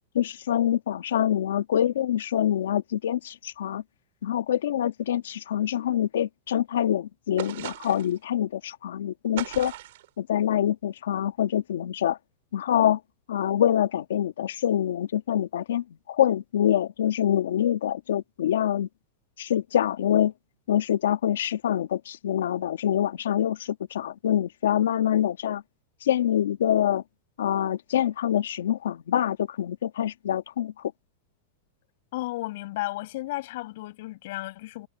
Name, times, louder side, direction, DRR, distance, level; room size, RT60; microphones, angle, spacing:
voice 1, 0.1-3.8 4.2-9.7 10.2-12.2 12.5-13.0 13.3-18.9 19.4-20.3 20.7-25.6 26.0-27.0 27.4-30.7, left 10 dB, 90° left, 1.6 m, -25 dB
sound 1, 7.4-8.2 9.4-10.1, right 16 dB, 70° right, 4.6 m, -37 dB
voice 2, 32.1-34.9, left 18 dB, 65° left, 6.3 m, -33 dB
supercardioid pair, 140°, 0 cm